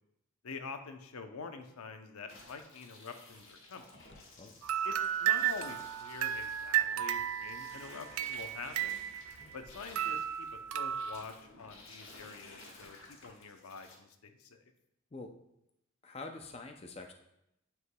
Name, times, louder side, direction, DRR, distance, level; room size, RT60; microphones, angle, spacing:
voice 1, 0.4-3.9 4.8-9.0 9.5-14.7, left 4 dB, 80° left, 6 dB, 0.6 m, -46 dB
sound 1, 2.3-14.0, left 2 dB, 60° left, 1.4 m, -54 dB
sound 2, 4.6-9.6 10.0-11.2, right 11 dB, 75° right, 0.3 m, -34 dB
voice 2, 16.0-17.1, left 3 dB, 25° left, 4 dB, 0.4 m, -45 dB
9.6 x 4.7 x 2.2 m, 0.82 s
head